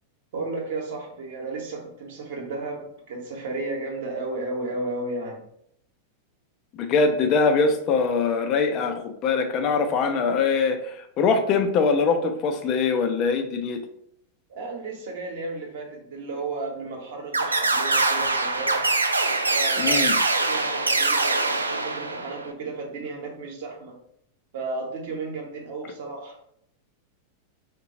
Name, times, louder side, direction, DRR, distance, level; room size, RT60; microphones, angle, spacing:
voice 1, 0.3-5.4 14.5-18.9 19.5-24.0 24.5-26.4, right 3 dB, 55° right, 0 dB, 1.0 m, -33 dB
voice 2, 6.7-13.8 19.8-20.2, left 4 dB, 35° left, 6 dB, 0.5 m, -23 dB
sound 1, 17.3-22.5, right 3 dB, 80° right, 0.4 m, -23 dB
3.8 x 2.2 x 4.0 m, 0.72 s
figure-of-eight pair, 90°, 0 cm